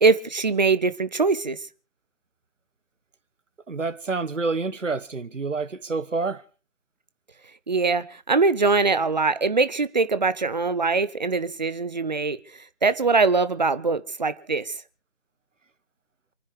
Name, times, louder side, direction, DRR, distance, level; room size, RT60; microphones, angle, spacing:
voice 1, 0.0-1.6 7.7-12.4 12.8-14.7, right 4 dB, 35° right, 0.8 m, -22 dB
voice 2, 3.7-6.4, right 3 dB, 65° right, 1.4 m, -28 dB
28.5 x 9.8 x 4.8 m
figure-of-eight pair, 155°, 40 cm